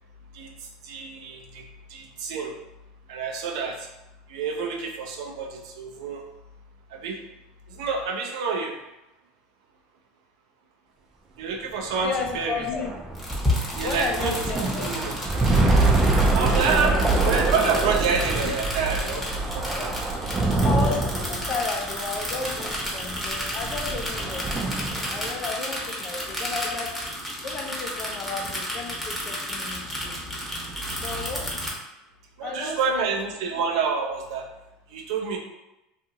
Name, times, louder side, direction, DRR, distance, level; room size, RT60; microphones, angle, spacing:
voice 1, 0.3-1.6 1.9-2.5 3.1-3.9 4.3-6.2 6.9-7.2 7.7-8.7 11.4-12.6 13.7-15.1 16.3-16.9 17.2-19.9 32.4-34.5 34.9-35.4, right 5 dB, 80° right, 2 dB, 0.5 m, -28 dB
sound 1, 11.8-25.4, right 2 dB, 20° right, 0.5 m, -25 dB
voice 2, 12.0-12.9 13.8-14.9 16.7-17.4 19.7-19.9 20.2-24.4 25.1-26.9 27.4-30.2 30.5-30.6 31.0-31.5 32.4-33.1 33.4-33.5, left 4 dB, 35° left, 3 dB, 0.5 m, -33 dB
sound 2, 13.1-31.7, left 1 dB, ahead, 0.9 m, -32 dB
2.7 x 2.4 x 2.7 m, 0.94 s
supercardioid pair, 110°, 3 cm